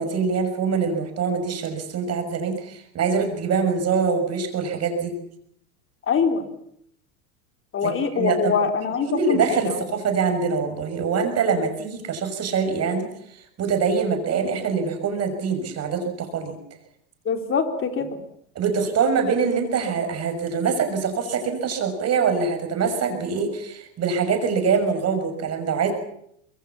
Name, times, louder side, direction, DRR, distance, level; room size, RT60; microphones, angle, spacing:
voice 1, 0.0-5.1 7.8-8.5 9.0-16.6 18.5-25.9, right 5 dB, 35° right, 6 dB, 6.2 m, -24 dB
voice 2, 6.1-6.4 7.7-9.8 17.3-18.1, left 5 dB, 25° left, 6 dB, 3.8 m, -23 dB
25.5 x 22.5 x 7.2 m, 0.72 s
supercardioid pair, 115°, 45 cm